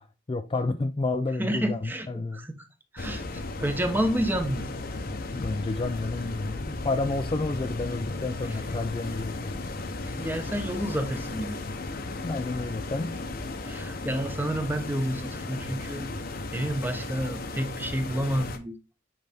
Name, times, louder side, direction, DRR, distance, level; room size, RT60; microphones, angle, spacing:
voice 1, 0.0-2.5 5.3-9.6 12.2-13.1, left 3 dB, 25° left, 0.4 m, -30 dB
voice 2, 1.4-2.6 2.9-4.7 10.0-11.6 13.6-16.1 16.5-18.8, equal, 10° right, 0.7 m, -30 dB
sound 1, 3.0-18.6, left 2 dB, 50° left, 0.7 m, -35 dB
7.4 x 3.9 x 3.4 m
head